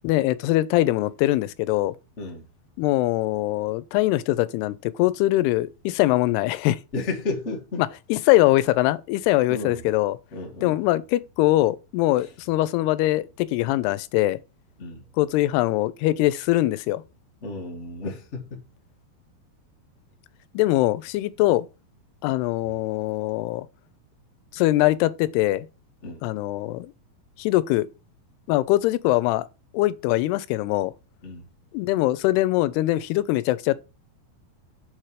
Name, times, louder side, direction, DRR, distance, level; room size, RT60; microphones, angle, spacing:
voice 1, 0.0-1.9 2.8-6.8 7.8-10.2 10.6-14.4 15.2-17.0 20.5-21.7 22.2-23.7 24.5-25.7 26.2-26.9 27.4-27.9 28.5-29.5 29.7-30.9 31.7-33.8, left 16 dB, 85° left, 2.6 m, -22 dB
voice 2, 2.2-2.5 6.9-7.8 9.5-9.8 10.3-10.8 12.2-12.3 14.8-15.0 17.4-18.6 26.0-26.2 31.2-31.4, left 3 dB, 55° left, 0.7 m, -32 dB
6.7 x 4.4 x 4.8 m
omnidirectional pair, 4.6 m